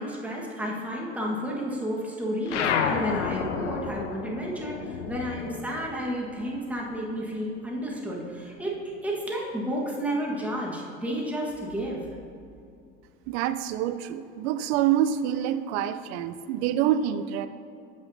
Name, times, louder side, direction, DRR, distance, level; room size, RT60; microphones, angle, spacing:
voice 1, 0.0-8.7 9.0-12.0, equal, 5° right, -3 dB, 1.4 m, -31 dB
sound 1, 2.5-7.3 7.6-9.1, left 7 dB, 85° left, 0.6 m, -31 dB
voice 2, 13.3-17.5, right 10 dB, 65° right, 12 dB, 0.5 m, -26 dB
8.3 x 7.7 x 2.7 m, 2.5 s
hypercardioid pair, 80°, 34 cm